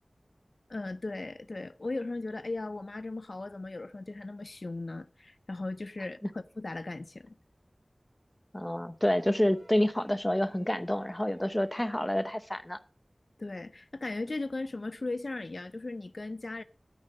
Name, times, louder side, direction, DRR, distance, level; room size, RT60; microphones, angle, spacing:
voice 1, 0.7-7.4 13.4-16.6, left 2 dB, 70° left, 0.4 m, -37 dB
voice 2, 8.5-12.8, left 1 dB, 20° left, 0.8 m, -28 dB
sound 1, 9.1-12.6 13.9-14.0, right 1 dB, 30° right, 3.2 m, -58 dB
9.3 x 8.8 x 5.4 m
wide cardioid pair, 40°, 0 cm